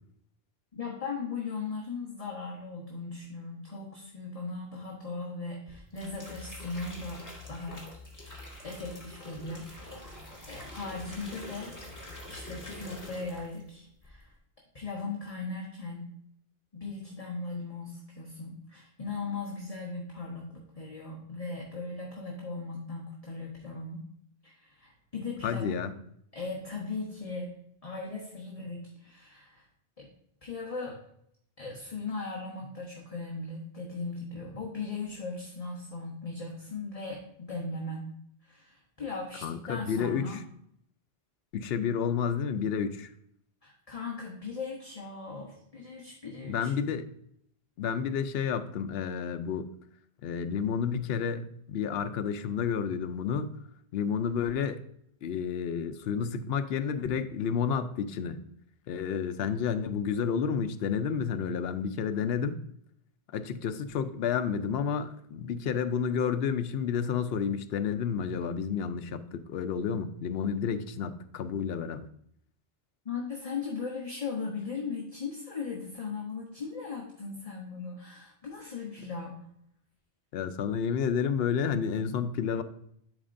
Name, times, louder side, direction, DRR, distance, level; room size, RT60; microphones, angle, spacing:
voice 1, 0.7-7.9 8.2-11.8 12.3-14.3 14.7-16.1 16.7-24.1 24.4-25.8 26.3-27.5 27.8-29.7 30.0-30.1 30.4-31.0 31.6-38.1 38.4-40.4 43.6-46.7 73.0-79.4, left 4 dB, 35° left, -2 dB, 1.1 m, -38 dB
sound 1, 5.7-13.7 14.0-14.3, left 1 dB, 20° left, 1.5 m, -45 dB
voice 2, 25.4-25.9 39.4-40.4 41.5-43.1 46.5-47.1 47.8-49.7 50.2-53.5 53.9-54.8 55.2-58.4 58.9-62.6 63.3-72.1 80.3-82.6, left 7 dB, 75° left, 10 dB, 0.8 m, -30 dB
10.5 x 4.3 x 2.6 m, 0.72 s
omnidirectional pair, 1.1 m